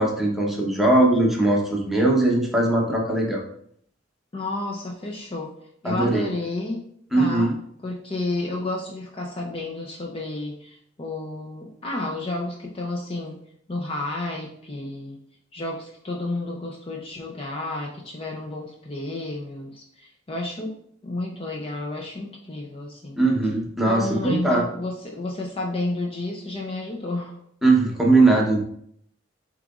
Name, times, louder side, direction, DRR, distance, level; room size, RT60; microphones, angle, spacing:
voice 1, 0.0-3.4 5.8-6.2 7.1-7.5 23.1-24.6 27.6-28.6, right 2 dB, ahead, -2 dB, 0.9 m, -20 dB
voice 2, 4.3-5.5 5.8-6.9 7.1-7.5 7.8-13.4 13.7-15.2 15.5-20.7 21.0-23.2 23.9-27.4, left 2 dB, 30° left, -1 dB, 0.5 m, -31 dB
7.2 x 3.0 x 2.4 m, 0.67 s
head